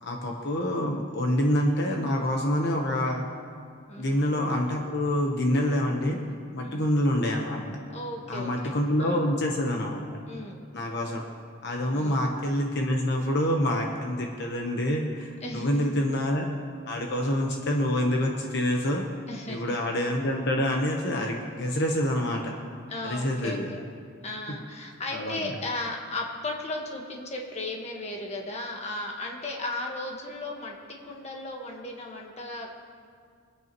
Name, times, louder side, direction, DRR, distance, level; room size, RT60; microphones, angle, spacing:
voice 1, 0.0-3.3 4.0-6.2 6.5-7.8 8.3-10.2 10.7-11.2 11.6-16.5 16.9-19.1 19.5-22.6 23.0-23.7 25.1-25.5, left 1 dB, 55° left, 1 dB, 1.0 m, -27 dB
voice 2, 3.9-4.3 6.6-6.9 7.9-9.3 10.3-10.6 11.9-12.3 15.4-15.9 19.3-19.6 22.9-23.8 24.2-30.7 31.0-32.7, left 2 dB, 30° left, 0 dB, 1.4 m, -36 dB
23.5 x 9.0 x 3.0 m, 2.1 s
head